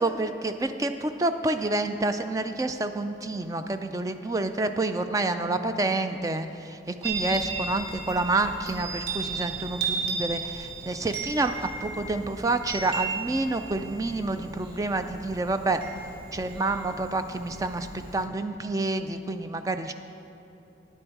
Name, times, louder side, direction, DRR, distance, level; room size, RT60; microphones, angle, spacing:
voice 1, 0.0-15.9 16.3-19.9, right 2 dB, 20° right, 8 dB, 0.3 m, -28 dB
Chime, 7.0-18.2, right 4 dB, 55° right, 1.3 m, -35 dB
10.0 x 8.8 x 4.6 m, 2.8 s
head